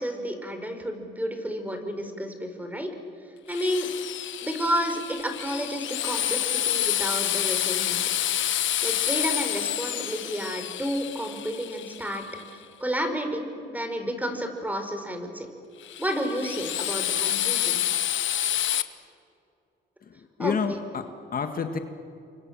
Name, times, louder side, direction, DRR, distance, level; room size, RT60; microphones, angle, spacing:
voice 1, 0.0-2.9 3.5-3.9 4.4-8.0 8.8-12.2 12.8-15.5 16.0-17.8 20.4-20.8, equal, 10° right, 6 dB, 4.7 m, -31 dB
Drill, 3.5-12.4 15.8-18.8, left 12 dB, 75° left, 1.2 m, -28 dB
voice 2, 20.0-21.8, left 6 dB, 45° left, 6 dB, 1.8 m, -30 dB
30.0 x 24.5 x 7.4 m, 2.6 s
cardioid pair, 90°, 20 cm